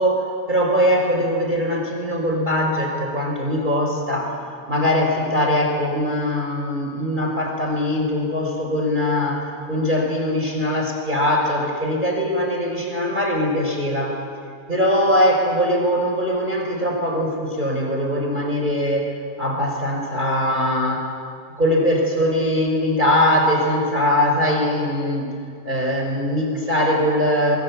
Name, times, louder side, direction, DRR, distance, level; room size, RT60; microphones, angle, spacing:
voice 1, 0.0-4.4 4.7-14.2 14.7-19.1 19.4-21.1 21.6-25.3 25.6-27.6, left 1 dB, 10° right, 1 dB, 3.5 m, -21 dB
28.0 x 22.0 x 8.2 m, 2.3 s
omnidirectional pair, 5.5 m